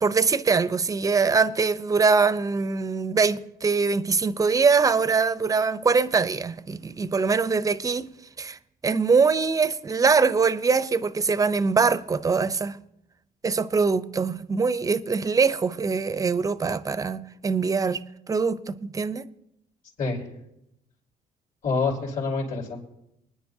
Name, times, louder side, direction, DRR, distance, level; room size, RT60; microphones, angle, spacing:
voice 1, 0.0-8.1 8.4-8.6 8.8-12.8 13.4-19.3, right 5 dB, 20° right, 0.5 m, -23 dB
voice 2, 21.6-22.8, left 4 dB, 55° left, 4.2 m, -26 dB
24.0 x 10.0 x 2.7 m
cardioid pair, 110°, 17 cm